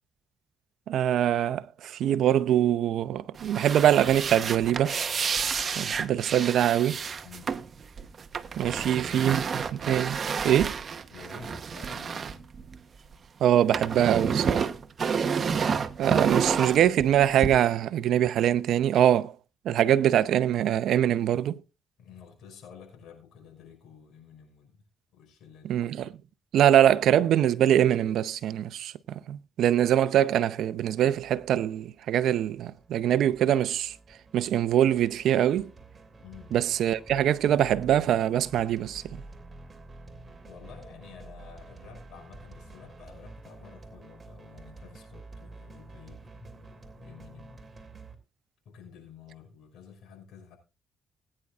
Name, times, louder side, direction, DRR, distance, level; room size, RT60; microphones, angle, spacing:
voice 1, 0.9-5.0 5.8-7.0 8.6-10.2 10.4-10.8 13.4-14.7 16.0-19.3 19.6-21.6 25.6-26.1 26.5-33.9 34.3-35.7 36.5-39.0, right 11 dB, 75° right, 0.6 m, -23 dB
sound 1, 3.3-13.1 13.4-17.5, right 6 dB, 45° right, 1.0 m, -30 dB
voice 2, 7.2-7.6 8.6-9.4 11.1-12.5 22.0-24.8 25.1-25.8 36.2-36.5 40.2-47.6 48.6-50.6, left 6 dB, 75° left, 5.7 m, -50 dB
sound 2, 31.1-48.1, right 2 dB, 25° right, 2.7 m, -49 dB
20.0 x 9.9 x 2.4 m
cardioid pair, 90°, 0 cm